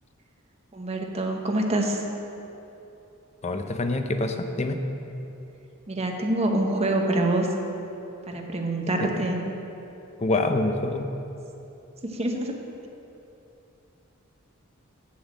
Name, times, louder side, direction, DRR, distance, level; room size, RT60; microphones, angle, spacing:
voice 1, 0.7-2.0 5.9-7.5 8.3-9.4 12.0-12.5, right 1 dB, 30° right, 2 dB, 1.0 m, -25 dB
voice 2, 3.4-4.8 9.0-9.1 10.2-11.1, left 2 dB, 30° left, 6 dB, 0.6 m, -26 dB
7.2 x 7.0 x 7.4 m, 2.9 s
head